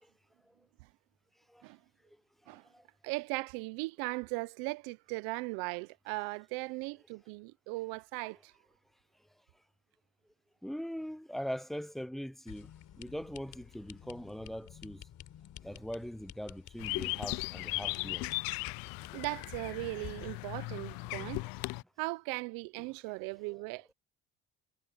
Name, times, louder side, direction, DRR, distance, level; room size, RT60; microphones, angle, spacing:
voice 1, 2.5-2.8 10.6-12.7 13.0-15.1 15.6-18.3 21.1-21.3 22.8-22.9, equal, ahead, 0.7 m, -41 dB
voice 2, 3.0-8.5 19.1-21.5 22.0-23.9, right 24 dB, 85° right, 0.8 m, -38 dB
sound 1, 12.5-20.3, left 10 dB, 60° left, 4.1 m, -51 dB
sound 2, 16.8-21.8, left 26 dB, 80° left, 0.5 m, -37 dB
supercardioid pair, 80°, 35 cm